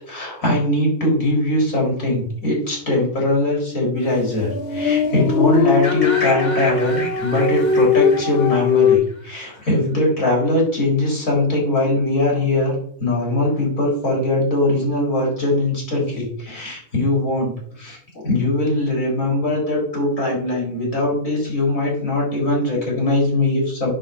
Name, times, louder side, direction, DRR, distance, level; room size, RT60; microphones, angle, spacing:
voice 1, 0.1-12.7 13.0-17.5 17.8-23.9, left 1 dB, 85° left, -3 dB, 4.0 m, -21 dB
sound 1, 4.2-9.0, left 6 dB, 55° left, 0.9 m, -20 dB
sound 2, 5.8-9.7, left 1 dB, 35° left, 2.0 m, -31 dB
7.7 x 4.3 x 6.7 m, 0.63 s
omnidirectional pair, 1.4 m